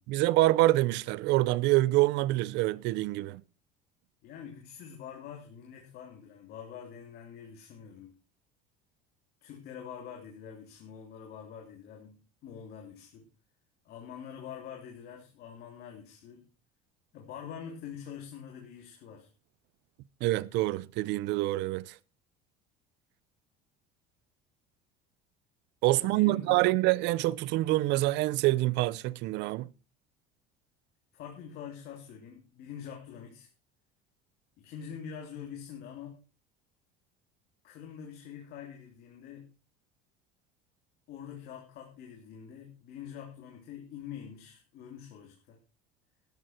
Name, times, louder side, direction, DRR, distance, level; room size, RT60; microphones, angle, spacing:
voice 1, 0.1-3.4 20.2-21.9 25.8-29.7, right 18 dB, 60° right, 0.7 m, -26 dB
voice 2, 4.2-8.1 9.4-13.3 13.8-16.5 17.1-19.3 25.9-26.6 31.1-33.5 34.6-36.2 37.6-39.5 41.1-45.6, left 8 dB, 50° left, 3.1 m, -45 dB
13.0 x 12.0 x 4.5 m
cardioid pair, 155°, 20 cm